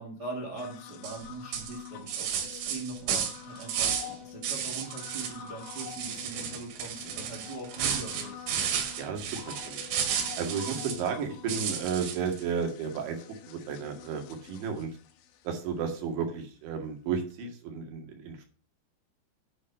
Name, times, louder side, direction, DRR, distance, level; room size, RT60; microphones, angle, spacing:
voice 1, 0.0-8.5 10.6-10.9, right 3 dB, 45° right, 0 dB, 1.4 m, -41 dB
sound 1, 0.6-15.9 17.3-17.4, left 10 dB, 75° left, 3.5 m, -47 dB
sound 2, 1.0-1.2 1.5-4.1 4.4-5.4 5.6-11.1 11.5-12.4, right 8 dB, 85° right, 4.5 m, -33 dB
voice 2, 9.0-9.8 10.4-13.2 13.5-14.2 14.5-14.9 15.5-18.5, right 6 dB, 70° right, 2 dB, 4.4 m, -33 dB
11.0 x 5.3 x 6.8 m, 0.38 s
omnidirectional pair, 5.6 m